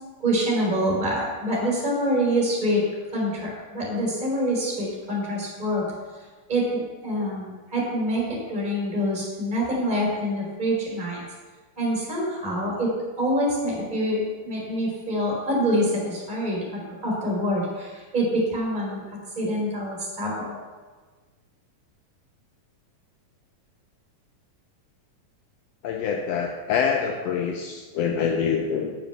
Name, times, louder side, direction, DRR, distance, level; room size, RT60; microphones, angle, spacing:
voice 1, 0.2-2.8 3.1-5.8 6.5-11.2 11.8-19.0 19.3-20.5, equal, 15° right, -3 dB, 3.0 m, -26 dB
voice 2, 25.8-28.9, left 6 dB, 85° left, 3 dB, 1.4 m, -25 dB
7.4 x 7.1 x 6.6 m, 1.4 s
omnidirectional pair, 3.7 m